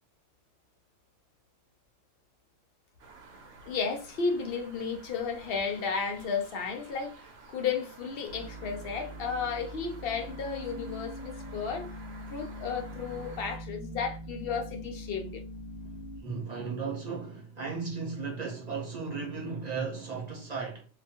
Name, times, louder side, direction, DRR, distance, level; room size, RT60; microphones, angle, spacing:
sound 1, 3.0-13.6, right 4 dB, 75° right, 1.0 m, -52 dB
voice 1, 3.7-12.0 12.3-15.4, left 5 dB, 60° left, 0.6 m, -33 dB
sound 2, 8.3-16.2, equal, 85° left, 0.9 m, -43 dB
voice 2, 16.2-20.9, right 5 dB, 40° right, 0.7 m, -35 dB
2.4 x 2.2 x 2.7 m
omnidirectional pair, 1.3 m